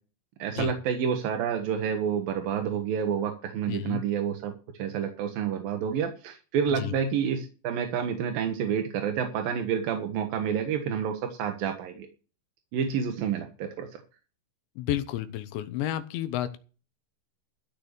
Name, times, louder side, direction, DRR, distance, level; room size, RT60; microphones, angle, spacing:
voice 1, 0.4-4.5 4.8-12.1 12.7-13.9, right 7 dB, 65° right, 5 dB, 2.5 m, -29 dB
voice 2, 3.7-4.0 6.7-7.0 14.8-16.6, left 13 dB, 75° left, 12 dB, 3.0 m, -31 dB
14.0 x 6.6 x 6.7 m, 0.35 s
omnidirectional pair, 5.7 m